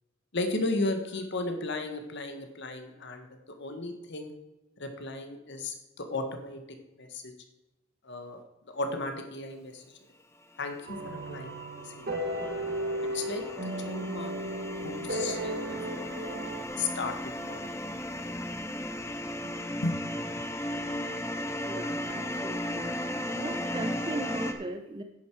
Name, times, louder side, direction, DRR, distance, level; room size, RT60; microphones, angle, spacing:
voice 1, 0.3-4.3 4.8-6.6 7.0-7.3 8.0-8.4 8.7-9.8 10.6-11.5 11.8-12.1 13.1-14.3 14.8-16.5 16.8-17.6 18.1-18.3 19.8-19.9, left 2 dB, 60° left, 6 dB, 1.5 m, -35 dB
sound 1, 10.7-24.5, left 1 dB, 15° left, 1.1 m, -36 dB
sound 2, 10.9-16.6, right 1 dB, 50° right, 1.9 m, -35 dB
voice 2, 21.6-23.0 23.4-25.0, right 1 dB, 25° right, 7 dB, 0.6 m, -37 dB
10.5 x 9.6 x 4.7 m, 1.0 s
head